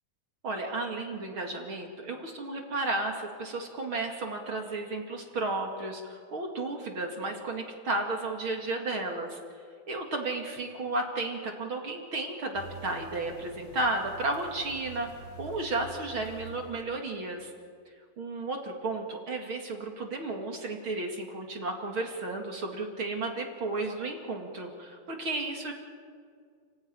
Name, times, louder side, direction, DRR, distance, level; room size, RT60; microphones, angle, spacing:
voice 1, 0.4-9.4 9.9-15.1 15.4-17.5 18.2-25.7, right 2 dB, 40° right, 2 dB, 2.7 m, -33 dB
sound 1, 12.5-16.9, right 1 dB, 50° left, 2.7 m, -47 dB
29.5 x 14.5 x 9.8 m, 2.1 s
omnidirectional pair, 4.0 m